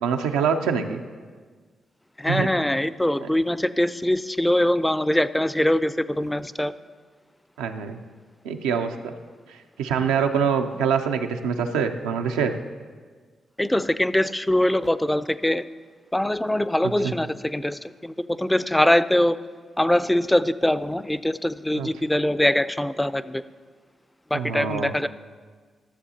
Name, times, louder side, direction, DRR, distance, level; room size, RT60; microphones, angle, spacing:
voice 1, 0.0-1.0 2.3-2.5 3.2-3.3 7.6-8.0 8.4-9.1 9.5-12.5 17.0-17.1 21.8-21.9 24.3-24.9, right 6 dB, 90° right, 5 dB, 0.4 m, -25 dB
voice 2, 2.2-6.7 13.6-15.6 16.1-19.4 19.8-23.4 24.3-25.1, left 1 dB, 10° left, 15 dB, 0.3 m, -23 dB
12.5 x 6.8 x 2.8 m, 1.5 s
supercardioid pair, 45°, 0 cm